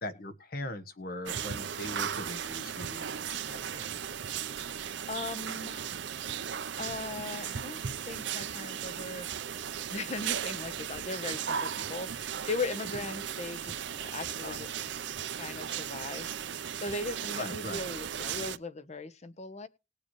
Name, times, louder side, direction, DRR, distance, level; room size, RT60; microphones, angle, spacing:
voice 1, 0.0-3.9 12.9-13.0 14.4-14.9 17.3-17.9, left 1 dB, 55° left, 1.3 m, -41 dB
sound 1, 1.3-18.6, right 8 dB, 75° right, 0.7 m, -36 dB
voice 2, 4.7-5.9 6.8-9.3 9.9-14.7 15.3-19.7, left 3 dB, 40° left, 1.0 m, -39 dB
20.0 x 7.0 x 3.1 m
head